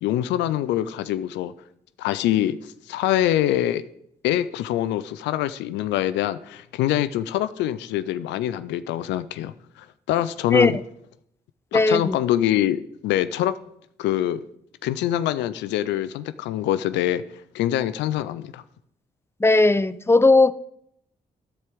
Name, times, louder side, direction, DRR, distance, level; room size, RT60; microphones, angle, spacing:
voice 1, 0.0-1.5 2.0-2.6 2.9-3.8 4.2-10.8 11.7-13.6 14.0-14.4 14.8-17.2 17.5-18.6, left 12 dB, 90° left, 0.5 m, -24 dB
voice 2, 11.7-12.2 19.4-20.5, left 2 dB, 15° left, 0.7 m, -17 dB
13.0 x 4.6 x 8.3 m
supercardioid pair, 45°, 18 cm